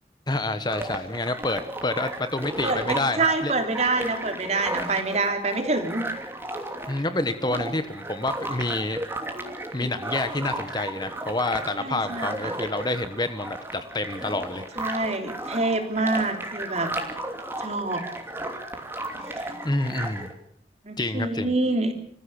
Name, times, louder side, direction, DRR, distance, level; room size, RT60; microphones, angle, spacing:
voice 1, 0.3-3.5 6.9-9.0 9.7-14.7 19.6-20.3 21.0-21.5, left 2 dB, 25° left, 10 dB, 1.2 m, -28 dB
sound 1, 0.7-20.3, right 1 dB, 15° right, 2.8 m, -34 dB
voice 2, 2.6-6.1 11.8-12.5 14.8-16.9 17.6-18.0 19.3-19.5 20.8-21.9, right 3 dB, 40° right, 5 dB, 3.5 m, -26 dB
26.5 x 15.0 x 8.6 m, 0.65 s
head